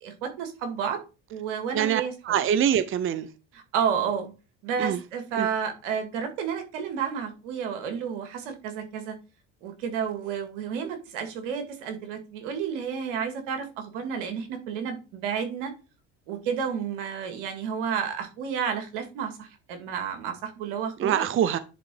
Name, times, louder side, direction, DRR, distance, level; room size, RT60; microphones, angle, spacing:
voice 1, 0.0-1.0 1.3-2.1 3.7-4.3 4.6-9.1 9.6-15.7 16.3-21.3, right 7 dB, 85° right, 2.2 m, -31 dB
voice 2, 1.7-3.3 4.8-5.0 5.3-5.5 21.0-21.6, right 9 dB, 35° right, 0.7 m, -24 dB
10.0 x 3.8 x 4.7 m
supercardioid pair, 90°, 35 cm